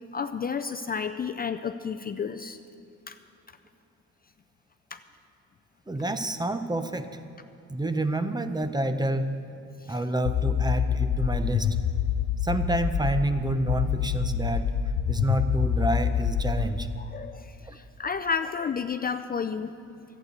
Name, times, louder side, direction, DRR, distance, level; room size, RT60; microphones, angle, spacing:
voice 1, 0.1-2.6 3.1-3.2 4.9-5.0 9.8-10.0 17.0-19.7, left 6 dB, 30° left, 8 dB, 0.4 m, -31 dB
voice 2, 5.9-7.2 7.7-9.4 9.9-11.8 12.4-14.7 15.1-16.9 17.6-17.8, right 1 dB, 15° right, 9 dB, 0.7 m, -28 dB
sound 1, 10.3-13.3 13.7-16.7, left 8 dB, 85° left, 0.6 m, -26 dB
12.0 x 8.3 x 7.9 m, 2.7 s
cardioid pair, 90°, 30 cm